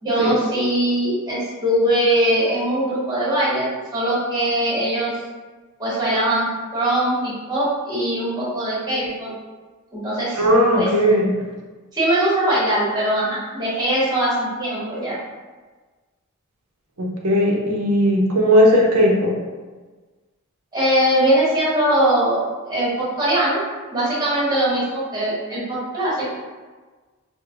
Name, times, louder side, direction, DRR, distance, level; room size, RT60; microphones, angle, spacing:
voice 1, 0.0-3.7 3.9-5.1 5.8-6.5 6.7-9.3 9.9-10.4 10.8-10.9 11.9-15.2 20.7-22.9 23.2-23.6 23.9-26.3, right 1 dB, 20° right, -8 dB, 1.2 m, -21 dB
voice 2, 10.3-11.4 17.0-19.4, equal, 80° right, -1 dB, 0.7 m, -17 dB
4.5 x 2.1 x 2.5 m, 1.3 s
head